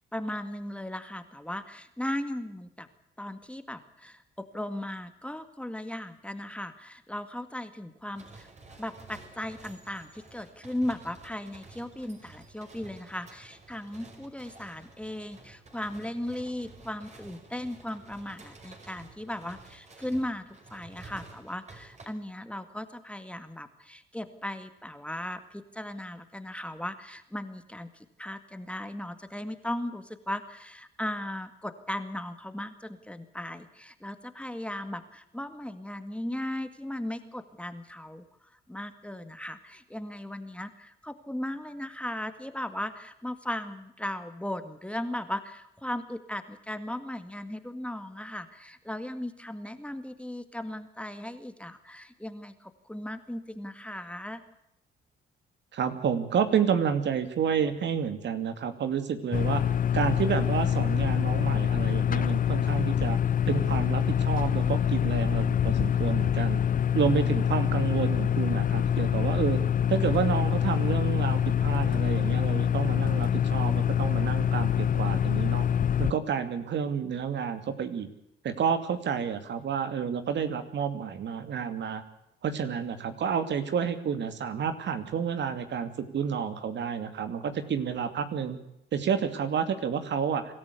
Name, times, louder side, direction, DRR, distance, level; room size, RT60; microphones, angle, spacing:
voice 1, 0.1-2.9 3.2-8.5 8.8-38.3 38.7-54.4, left 1 dB, 5° left, 9 dB, 2.0 m, -37 dB
sound 1, 8.1-22.1, right 3 dB, 35° right, 5.6 m, -51 dB
voice 2, 55.7-59.6 59.9-63.2 63.5-66.6 66.9-69.6 69.9-75.7 76.0-78.1 78.4-82.0 82.4-88.6 88.9-90.5, right 7 dB, 65° right, 9 dB, 2.6 m, -30 dB
sound 2, 59.3-76.1, left 9 dB, 45° left, 0.7 m, -25 dB
25.0 x 13.5 x 8.4 m, 0.80 s
cardioid pair, 90°, 20 cm